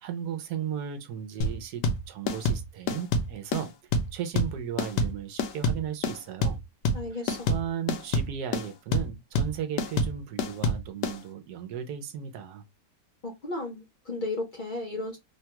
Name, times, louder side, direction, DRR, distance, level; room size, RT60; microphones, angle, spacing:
voice 1, 0.0-3.7 4.1-6.6 7.5-12.6, right 8 dB, 70° right, 1.1 m, -35 dB
sound 1, 1.4-11.2, left 2 dB, 80° left, 1.2 m, -27 dB
voice 2, 6.9-7.5 13.2-15.2, left 2 dB, 55° left, 0.5 m, -34 dB
3.3 x 2.2 x 2.8 m
omnidirectional pair, 1.8 m